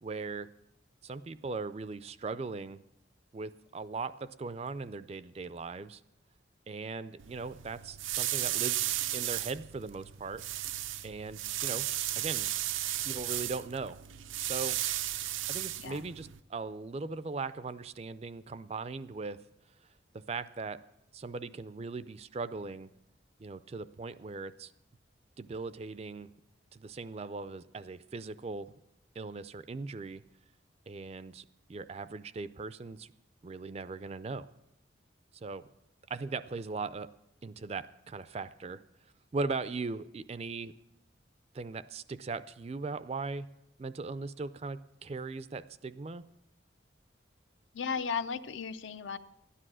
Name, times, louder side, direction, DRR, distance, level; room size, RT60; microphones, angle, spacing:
voice 1, 0.0-0.5 1.0-2.8 3.3-6.0 6.7-10.4 11.0-11.9 12.2-12.5 13.0-14.0 14.4-14.8 15.5-19.4 20.1-20.8 21.1-22.9 23.4-24.7 25.4-26.3 26.7-28.7 29.2-30.2 30.9-33.1 33.4-34.5 35.3-35.7 36.1-37.1 37.4-38.8 39.3-40.7 41.5-43.5 43.8-46.2, right 4 dB, 35° right, 15 dB, 0.4 m, -39 dB
sound 1, 7.2-16.4, right 13 dB, 90° right, 0.5 m, -35 dB
voice 2, 47.7-49.2, left 6 dB, 75° left, 12 dB, 0.6 m, -35 dB
12.5 x 10.0 x 6.2 m, 0.84 s
head